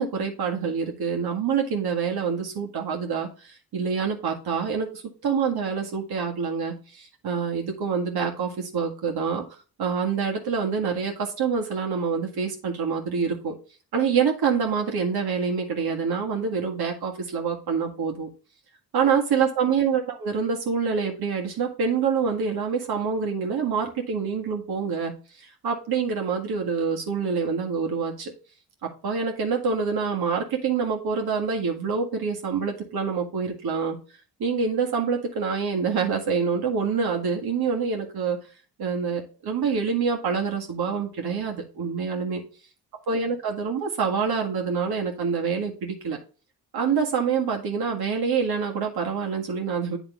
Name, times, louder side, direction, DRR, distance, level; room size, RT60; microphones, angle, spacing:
voice 1, 0.0-9.5 9.8-13.6 13.9-18.3 18.9-25.1 25.4-28.3 28.8-34.0 34.4-38.4 38.8-42.4 43.1-46.2 46.7-50.0, right 6 dB, 70° right, 1 dB, 1.8 m, -26 dB
9.3 x 3.6 x 3.5 m, 0.36 s
supercardioid pair, 60°, 39 cm